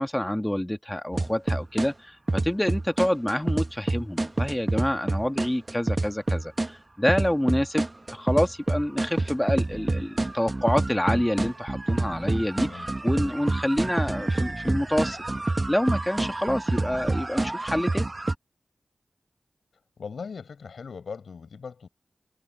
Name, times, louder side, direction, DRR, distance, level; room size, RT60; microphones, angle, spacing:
voice 1, 0.0-15.2 15.7-18.1, left 1 dB, 10° left, 1.8 m, -27 dB
sound 1, 1.1-1.9 2.3-6.7 7.1-18.3, right 2 dB, 30° right, 1.1 m, -27 dB
voice 2, 12.5-12.9 20.0-21.9, left 5 dB, 85° left, 6.6 m, -39 dB
wide cardioid pair, 65°, 0 cm